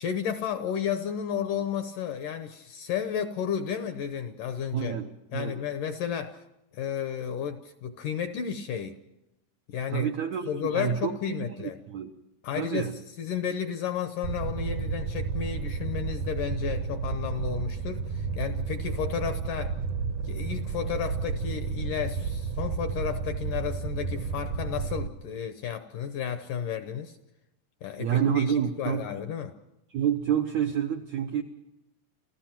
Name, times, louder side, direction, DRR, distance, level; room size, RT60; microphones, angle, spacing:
voice 1, 0.0-5.0 5.3-6.4 6.7-9.0 9.7-11.8 12.4-12.9 13.2-19.7 20.2-27.2 27.8-28.5 28.8-29.5, left 8 dB, 75° left, 2.0 m, -32 dB
voice 2, 4.7-5.6 9.9-12.1 12.5-13.0 28.0-29.1 29.9-31.4, right 8 dB, 85° right, 1.6 m, -28 dB
Fire, 14.2-25.1, right 5 dB, 70° right, 2.0 m, -32 dB
30.0 x 15.0 x 5.9 m
omnidirectional pair, 4.7 m